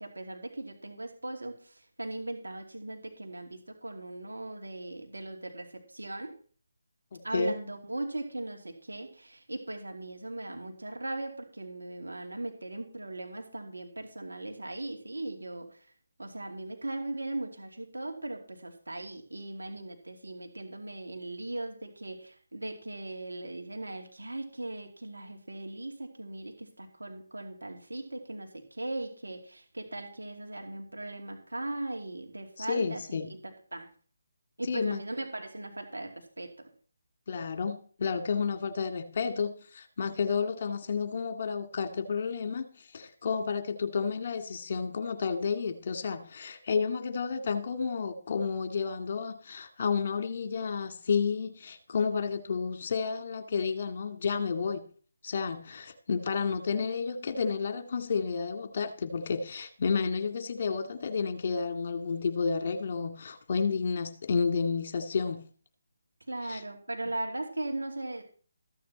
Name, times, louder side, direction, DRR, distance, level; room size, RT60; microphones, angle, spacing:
voice 1, 0.0-6.3 7.2-15.9 16.2-33.9 34.6-36.7 66.3-68.2, right 2 dB, 90° right, 3 dB, 2.6 m, -38 dB
voice 2, 7.1-7.5 32.6-33.3 34.7-35.0 37.3-42.6 42.9-54.8 55.2-65.4 66.4-66.6, left 5 dB, 50° left, 8 dB, 2.0 m, -31 dB
15.0 x 9.3 x 4.2 m, 0.42 s
figure-of-eight pair, 155°, 0 cm